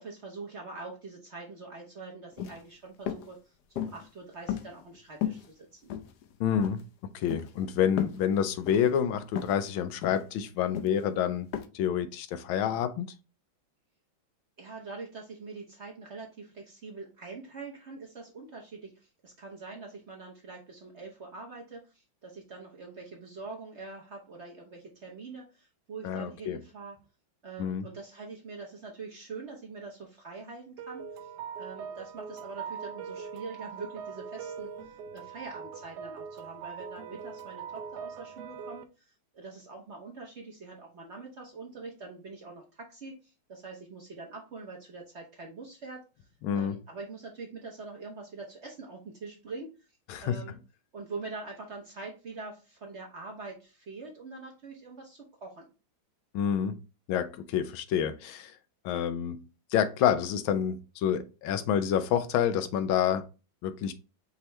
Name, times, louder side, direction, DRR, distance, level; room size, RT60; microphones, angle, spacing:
voice 1, 0.0-5.9 14.6-27.0 27.4-31.3 31.6-46.3 46.5-49.7 50.2-50.6 50.9-55.7, right 3 dB, 50° right, 0.9 m, -44 dB
sound 1, 2.3-2.6 3.1-3.3 3.8-4.1 4.5-5.0 5.2-5.5 5.9-6.4 6.6-6.8 7.3-7.5 8.0-8.2 8.7-8.9 9.4-9.6 10.0-10.3 10.7-11.0 11.5-11.7, left 10 dB, 70° left, 1.0 m, -34 dB
voice 2, 6.4-6.8 7.1-11.5 11.7-13.1 26.0-26.6 27.6-27.8 46.4-46.8 50.1-50.4 56.3-56.7 57.1-58.5 58.8-59.4 59.7-63.2 63.6-63.9, left 9 dB, 90° left, 1.4 m, -28 dB
sound 2, 30.8-38.8, right 6 dB, 75° right, 1.0 m, -41 dB
5.6 x 2.9 x 3.1 m
omnidirectional pair, 2.2 m